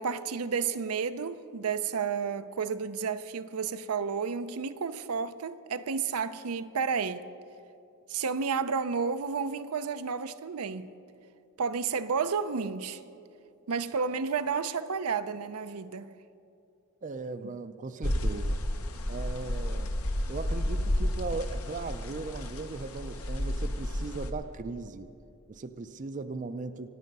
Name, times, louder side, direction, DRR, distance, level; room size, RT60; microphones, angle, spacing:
voice 1, 0.0-7.2 8.1-10.9 11.6-13.0 13.7-16.1, right 5 dB, 85° right, 0.6 m, -31 dB
voice 2, 17.0-18.6 19.1-19.9 20.3-25.1 25.5-26.9, right 3 dB, 35° right, 0.5 m, -38 dB
sound 1, 18.0-24.3, left 1 dB, 80° left, 1.2 m, -31 dB
24.5 x 9.2 x 5.4 m
head